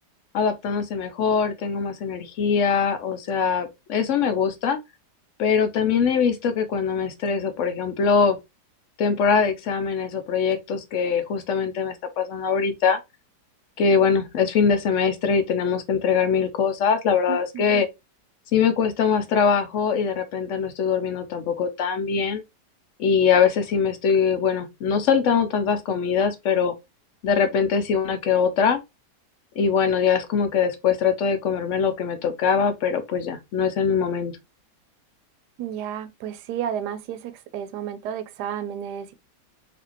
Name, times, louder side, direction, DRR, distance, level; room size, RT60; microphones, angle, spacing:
voice 1, 0.3-4.8 5.4-8.4 9.0-13.0 13.8-17.9 18.5-22.4 23.0-26.7 27.2-28.8 29.6-34.4, left 6 dB, 65° left, 0.7 m, -22 dB
voice 2, 17.3-17.8 35.6-39.1, right 9 dB, 80° right, 1.1 m, -32 dB
4.2 x 2.7 x 2.8 m
omnidirectional pair, 1.8 m